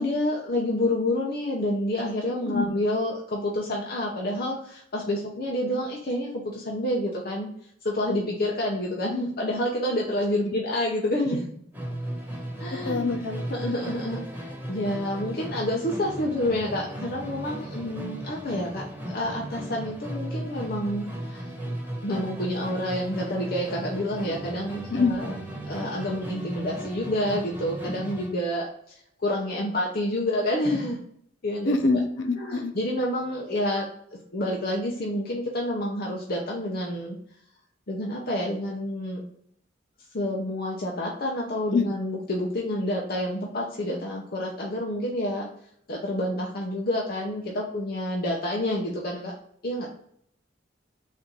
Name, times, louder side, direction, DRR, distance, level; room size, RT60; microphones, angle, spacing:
voice 1, 0.0-7.5 7.8-11.5 12.6-13.1 13.5-14.2 14.7-21.5 22.0-25.3 25.6-29.0 29.2-31.0 31.4-31.8 32.4-33.9 34.3-37.2 37.9-39.2 40.1-45.5 45.9-49.4 49.6-49.9, left 1 dB, 55° left, -2 dB, 0.8 m, -28 dB
Musical instrument, 11.7-28.4, right 1 dB, 10° right, 1.3 m, -36 dB
voice 2, 12.8-13.6 24.9-25.2 31.6-32.7 41.7-41.8, left 3 dB, 85° left, 6 dB, 0.6 m, -25 dB
4.2 x 2.6 x 4.7 m, 0.65 s
head